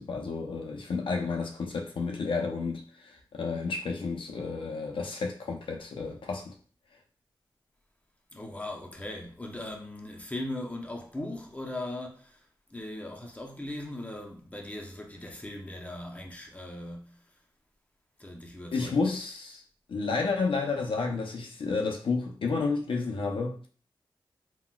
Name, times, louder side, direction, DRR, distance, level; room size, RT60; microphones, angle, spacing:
voice 1, 0.0-6.5 18.7-19.6 19.9-23.7, left 4 dB, 70° left, 0.5 m, -31 dB
voice 2, 8.3-17.2 18.2-19.0, left 1 dB, 15° left, 0.6 m, -39 dB
3.8 x 2.1 x 2.2 m
cardioid pair, 65°, 9 cm